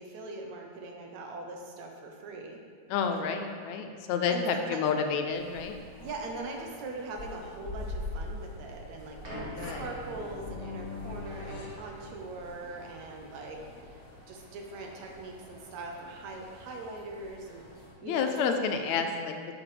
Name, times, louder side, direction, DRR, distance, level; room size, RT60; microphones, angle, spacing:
voice 1, 0.0-2.6 4.3-4.8 6.0-9.2 9.6-13.6 14.3-17.6 18.0-18.6, right 3 dB, 80° right, 1 dB, 2.1 m, -41 dB
voice 2, 2.9-5.8 9.2-9.8 18.0-19.4, left 6 dB, 80° left, 5 dB, 1.9 m, -30 dB
sound 1, 5.3-17.9, left 2 dB, 35° left, 2.2 m, -45 dB
sound 2, 9.2-13.5 13.8-14.0 14.7-14.8, equal, 40° right, 1.2 m, -45 dB
sound 3, 9.7-12.8, left 4 dB, 55° left, 1.8 m, -44 dB
11.0 x 7.3 x 3.3 m, 2.1 s
omnidirectional pair, 3.3 m